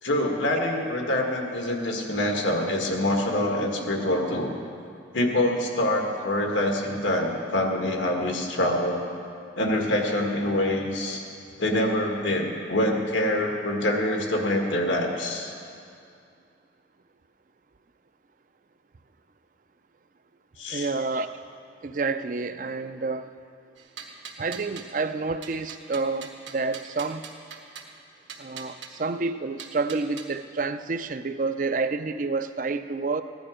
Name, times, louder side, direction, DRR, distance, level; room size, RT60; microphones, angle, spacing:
voice 1, 0.0-4.5 5.1-9.0 9.5-11.2 11.6-15.5 20.6-20.9, left 1 dB, 85° left, 1 dB, 1.7 m, -25 dB
voice 2, 20.7-21.4 21.8-23.3 24.4-27.3 28.4-33.2, right 3 dB, 45° right, 10 dB, 0.4 m, -29 dB
sound 1, 23.8-25.0 25.4-27.9 28.3-28.9 29.6-30.3, right 6 dB, 80° right, 1.3 m, -42 dB
16.0 x 11.0 x 5.0 m, 2.4 s
head